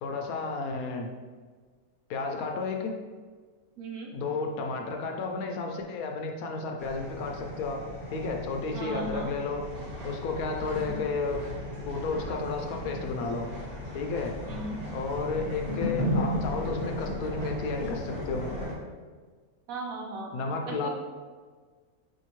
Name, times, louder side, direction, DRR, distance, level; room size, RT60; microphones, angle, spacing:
voice 1, 0.0-1.1 2.1-2.9 4.1-7.8 8.1-9.6 10.0-11.4 11.9-13.5 13.9-14.4 14.9-18.5 20.3-20.9, left 4 dB, 75° left, 3 dB, 1.0 m, -32 dB
voice 2, 3.8-4.1 8.7-9.3 10.7-11.0 14.4-14.8 19.7-20.3 20.7-20.9, right 2 dB, 70° right, -1 dB, 1.1 m, -37 dB
sound 1, 6.8-18.7, left 1 dB, 5° left, 1.0 m, -36 dB
sound 2, 9.6-18.3, left 1 dB, 90° right, 1.5 m, -44 dB
5.2 x 2.8 x 3.0 m, 1.5 s
omnidirectional pair, 1.6 m